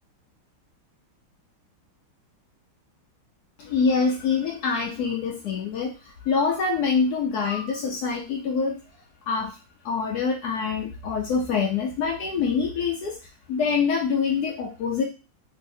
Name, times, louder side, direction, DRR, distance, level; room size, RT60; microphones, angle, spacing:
voice 1, 3.6-8.8 9.3-9.6 9.8-13.2 13.5-15.0, left 5 dB, 85° left, 0 dB, 0.8 m, -25 dB
3.1 x 2.7 x 2.6 m, 0.32 s
omnidirectional pair, 2.3 m